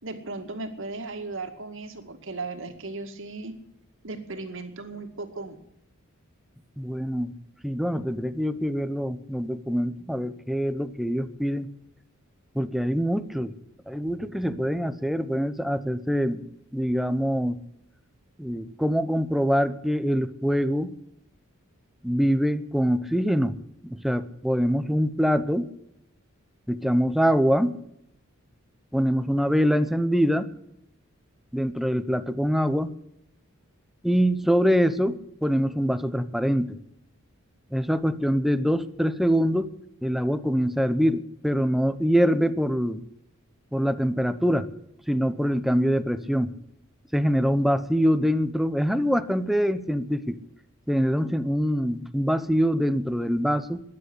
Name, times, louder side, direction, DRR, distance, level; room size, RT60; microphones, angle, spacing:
voice 1, 0.0-3.5 4.0-5.6, right 3 dB, 65° right, 6 dB, 2.2 m, -36 dB
voice 2, 6.8-7.3 7.6-11.7 12.5-13.5 13.9-16.5 16.7-17.6 18.4-20.9 22.0-23.6 23.8-25.7 26.7-27.8 28.9-30.5 31.5-32.9 34.0-36.8 37.7-39.7 40.0-43.0 43.7-44.7 45.1-46.5 47.1-50.4 50.9-53.8, equal, ahead, 12 dB, 0.8 m, -24 dB
13.0 x 10.5 x 9.9 m, 0.77 s
head